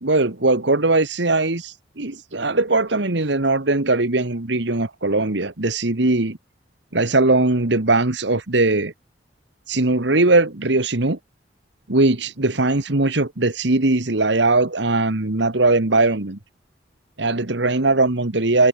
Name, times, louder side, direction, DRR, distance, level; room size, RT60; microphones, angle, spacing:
voice 1, 0.0-6.4 6.9-8.9 9.7-11.2 11.9-16.4 17.2-18.7, right 2 dB, 75° right, 1.7 m, -20 dB
head